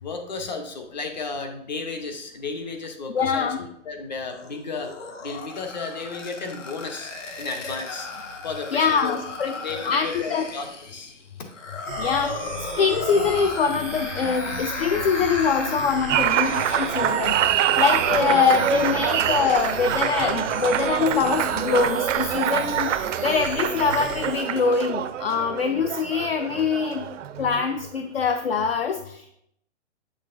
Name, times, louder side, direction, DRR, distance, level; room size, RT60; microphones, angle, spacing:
voice 1, 0.0-5.0 5.2-8.1 8.4-9.2 9.5-11.1 11.4-11.5, left 4 dB, 35° left, 6 dB, 0.8 m, -33 dB
voice 2, 3.1-3.6 8.7-9.5 9.8-10.5 12.0-12.5 12.8-17.5 17.8-27.1 27.4-29.3, left 5 dB, 55° left, 7 dB, 0.5 m, -24 dB
sound 1, 4.3-20.9, left 4 dB, 75° left, 1.3 m, -36 dB
sound 2, 11.8-24.4, right 3 dB, 10° right, 0.5 m, -36 dB
Applause, 16.1-27.9, right 10 dB, 80° right, 0.5 m, -25 dB
8.4 x 6.3 x 2.5 m, 0.74 s
hypercardioid pair, 175°, 37 cm